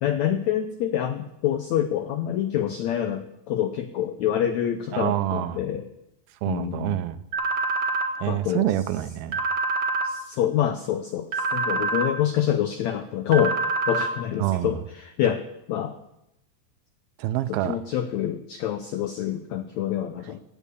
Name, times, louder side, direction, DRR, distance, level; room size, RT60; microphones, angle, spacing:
voice 1, 0.0-5.8 6.5-7.0 8.3-8.7 10.0-13.6 13.9-16.0 17.6-20.4, left 10 dB, 90° left, 8 dB, 1.6 m, -26 dB
voice 2, 4.9-5.6 6.4-7.2 8.2-9.4 14.4-14.8 17.2-17.8, right 13 dB, 85° right, 12 dB, 2.6 m, -26 dB
sound 1, 7.3-8.1 9.3-10.1 11.3-12.1 13.3-14.1, right 3 dB, 50° right, 2.5 m, -25 dB
17.5 x 8.4 x 8.5 m, 0.86 s
omnidirectional pair, 4.3 m